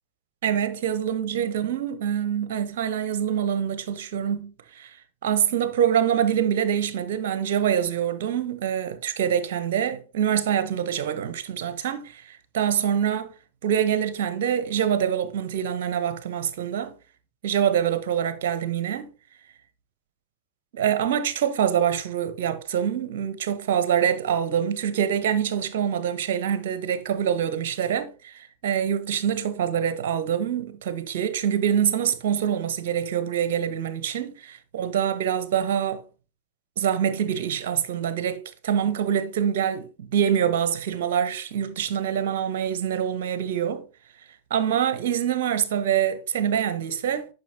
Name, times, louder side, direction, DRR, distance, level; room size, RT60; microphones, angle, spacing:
voice 1, 0.4-4.9 5.2-13.3 13.6-16.9 17.4-19.1 20.7-36.0 36.8-43.8 44.5-47.3, right 9 dB, 55° right, 1.0 m, -25 dB
10.5 x 5.7 x 2.9 m
figure-of-eight pair, 90°, 0 cm